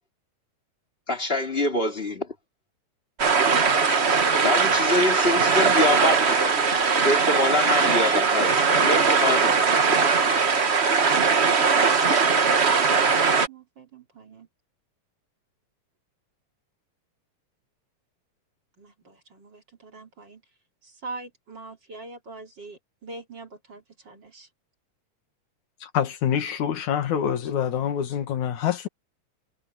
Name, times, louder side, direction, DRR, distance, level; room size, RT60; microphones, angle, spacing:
voice 1, 1.1-2.3 4.4-6.6 7.0-9.7 12.1-12.2, left 2 dB, 20° left, 3.0 m, -25 dB
sound 1, 3.2-13.5, right 5 dB, 60° right, 0.6 m, -20 dB
voice 2, 11.1-14.5 18.8-20.4 20.8-24.5, right 3 dB, 40° right, 3.1 m, -44 dB
voice 3, 25.8-28.9, left 9 dB, 80° left, 3.1 m, -26 dB
omnidirectional pair, 3.4 m